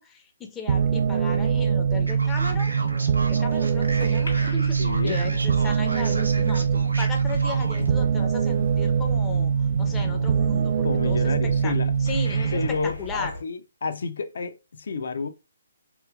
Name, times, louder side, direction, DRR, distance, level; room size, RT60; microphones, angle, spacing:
voice 1, 0.0-2.7 3.3-4.8 5.0-9.5 9.8-11.2 11.6-11.7 12.0-12.6 13.0-13.3, left 4 dB, 15° left, 0.6 m, -36 dB
sound 1, 0.7-12.7, right 7 dB, 45° right, 0.3 m, -23 dB
Male speech man speaking, 2.1-7.9, right 2 dB, 90° right, 0.8 m, -36 dB
sound 2, 3.5-13.4, left 2 dB, 75° left, 1.3 m, -38 dB
voice 2, 4.8-5.2 10.8-11.9 12.5-15.3, left 4 dB, 60° left, 0.5 m, -30 dB
3.1 x 3.0 x 2.3 m
figure-of-eight pair, 140°, 0 cm